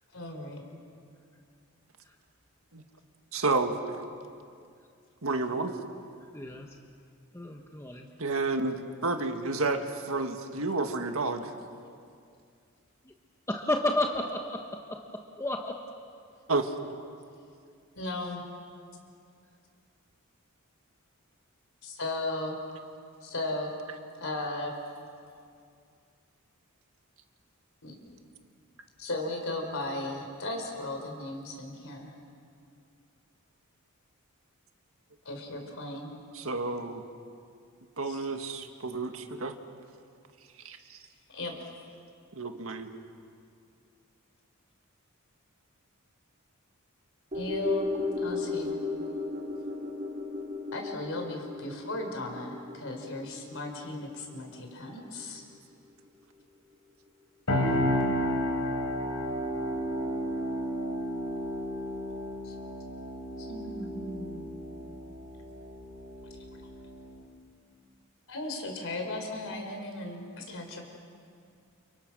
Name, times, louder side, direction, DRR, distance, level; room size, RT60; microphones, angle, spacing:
voice 1, 0.1-0.6 18.0-18.4 21.8-22.6 23.2-23.7 24.2-24.7 27.8-28.1 29.0-32.1 35.2-36.1 38.0-38.2 41.3-41.7 47.3-48.8 50.7-55.4 62.4-62.5 63.4-64.6 68.3-70.9, left 2 dB, 60° left, 3 dB, 5.0 m, -36 dB
voice 2, 3.3-4.0 5.2-5.7 8.2-11.5 16.5-16.7 36.3-37.0 38.0-39.6 40.6-41.0 42.3-42.9, right 3 dB, 65° right, 5 dB, 1.9 m, -30 dB
voice 3, 6.3-6.7 7.3-8.1 13.1-13.2 13.5-14.7 15.4-15.8, left 1 dB, 10° left, 2 dB, 1.2 m, -31 dB
sound 1, 47.3-55.7 56.1-56.2, left 2 dB, 35° right, 4.0 m, -35 dB
sound 2, 57.5-67.2, equal, 80° left, 5.1 m, -32 dB
30.0 x 29.5 x 6.4 m, 2.3 s
head